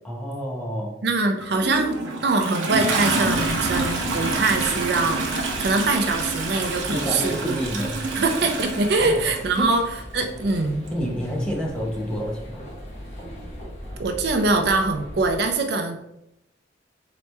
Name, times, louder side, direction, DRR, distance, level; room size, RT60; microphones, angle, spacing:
voice 1, 0.0-0.9 6.5-6.6 6.9-8.0 9.0-9.2 9.6-9.7 10.9-12.6, equal, 5° left, -3 dB, 0.8 m, -29 dB
voice 2, 1.0-2.0 2.2-5.2 5.6-7.6 8.1-10.8 14.0-16.0, right 3 dB, 55° right, 5 dB, 0.4 m, -23 dB
Toilet flush, 1.4-9.8 10.9-11.0, right 2 dB, 85° right, 0.8 m, -27 dB
sound 1, 3.3-15.4, equal, 35° left, 1.1 m, -39 dB
4.1 x 3.0 x 3.3 m, 0.81 s
head